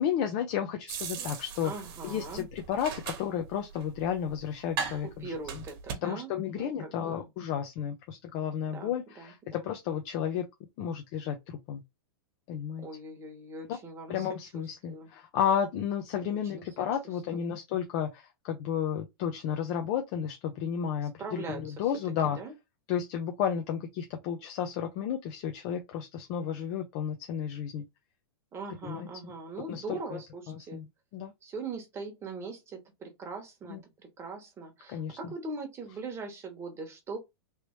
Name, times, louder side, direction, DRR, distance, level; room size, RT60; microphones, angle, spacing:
voice 1, 0.0-1.7 2.0-5.3 6.0-10.5 10.8-11.8 12.5-12.9 14.1-22.4 22.9-27.9 28.8-29.1 29.7-30.2 30.5-30.8 31.1-31.3 33.7-33.8 34.9-35.3, left 8 dB, 40° left, 0.6 m, -32 dB
sound 1, 0.9-5.9, right 6 dB, 55° right, 1.2 m, -39 dB
voice 2, 1.6-2.4 5.0-7.3 8.7-9.7 12.8-14.3 14.5-15.1 16.5-16.7 17.3-17.5 21.0-21.9 22.3-22.5 28.5-30.8 31.4-37.2, right 3 dB, 20° right, 1.1 m, -41 dB
3.2 x 2.9 x 3.1 m
hypercardioid pair, 145°, 14 cm